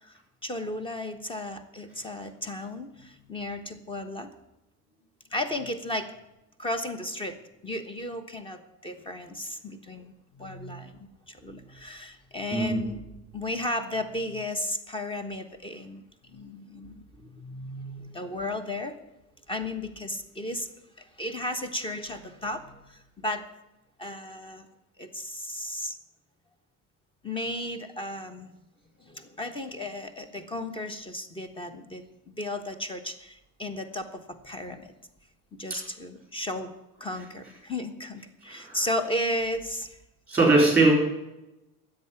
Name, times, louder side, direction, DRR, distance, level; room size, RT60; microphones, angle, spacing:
voice 1, 0.0-4.3 5.3-6.1 6.6-13.0 13.3-19.0 19.5-20.7 21.0-23.4 24.0-24.7 25.0-26.0 27.2-28.5 29.0-32.0 32.4-34.9 35.6-36.7 37.0-40.0, left 1 dB, 15° left, 9 dB, 1.2 m, -34 dB
voice 2, 40.3-40.9, right 3 dB, 5° right, -2 dB, 4.3 m, -20 dB
10.5 x 7.9 x 9.6 m, 0.94 s
cardioid pair, 130°, 38 cm